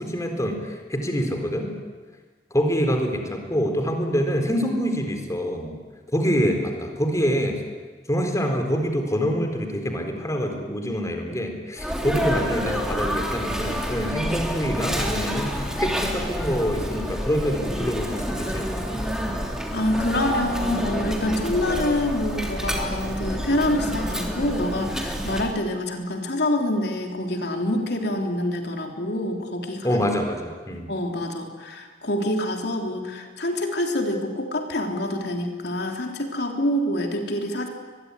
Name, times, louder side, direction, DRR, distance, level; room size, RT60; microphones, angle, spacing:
voice 1, 0.0-1.7 2.5-5.7 6.1-7.6 8.1-19.0 29.8-30.9, equal, 20° left, 4 dB, 4.1 m, -25 dB
Sneeze, 11.8-25.5, equal, 5° right, 3.3 m, -28 dB
voice 2, 19.7-30.0 30.9-37.7, left 1 dB, 65° left, 3 dB, 3.6 m, -26 dB
23.0 x 21.5 x 10.0 m, 1.4 s
head